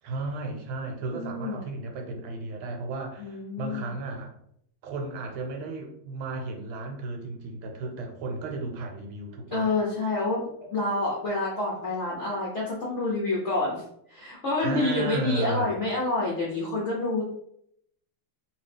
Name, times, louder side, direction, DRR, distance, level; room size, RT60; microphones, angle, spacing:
voice 1, 0.0-4.3 4.8-9.7 14.6-15.7, right 2 dB, 85° right, 3 dB, 1.5 m, -34 dB
voice 2, 1.1-1.6 3.2-3.9 9.5-10.4 10.7-13.8 14.1-17.2, left 2 dB, 65° left, -5 dB, 0.7 m, -28 dB
3.0 x 2.8 x 3.3 m, 0.71 s
omnidirectional pair, 2.3 m